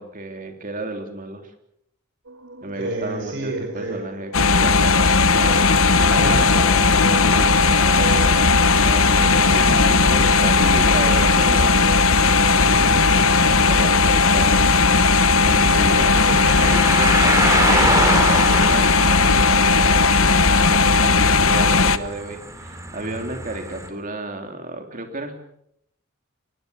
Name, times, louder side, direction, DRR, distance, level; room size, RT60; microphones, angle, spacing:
voice 1, 0.0-1.5 2.6-5.6 6.0-6.4 7.2-8.5 8.8-12.2 13.5-14.7 15.4-16.1 16.6-25.3, right 2 dB, 40° right, 5 dB, 3.3 m, -32 dB
sound 1, 2.3-18.7, right 4 dB, 85° right, 1.5 m, -37 dB
voice 2, 2.8-4.0 6.1-8.5 12.4-13.9 15.5-16.5 23.1-23.3, right 1 dB, 60° right, 2 dB, 4.9 m, -32 dB
sound 2, 4.3-22.0, left 4 dB, 70° left, 1.0 m, -16 dB
sound 3, 5.3-23.9, right 2 dB, 15° right, 3.0 m, -29 dB
24.0 x 19.0 x 7.0 m, 0.74 s
head